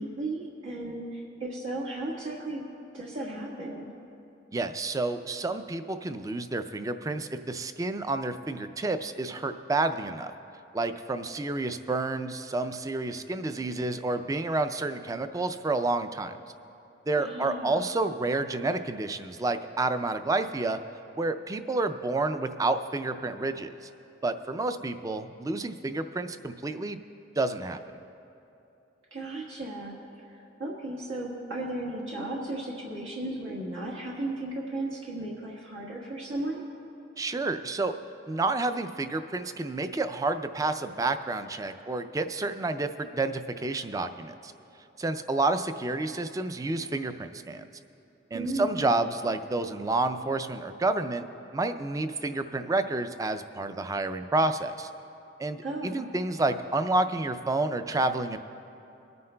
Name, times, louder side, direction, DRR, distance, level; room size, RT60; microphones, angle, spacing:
voice 1, 0.0-2.6 2.9-3.9 17.1-17.8 29.1-29.9 30.3-36.6 48.3-48.9 55.6-56.0, right 2 dB, 85° right, -4 dB, 1.5 m, -35 dB
voice 2, 4.5-10.3 10.7-16.4 17.1-20.8 21.2-23.9 24.2-27.0 27.4-27.8 37.2-37.9 38.3-44.5 45.0-47.7 48.3-51.3 51.5-54.9 55.4-58.4, right 2 dB, 20° right, 10 dB, 0.3 m, -29 dB
24.5 x 9.4 x 2.2 m, 2.9 s
head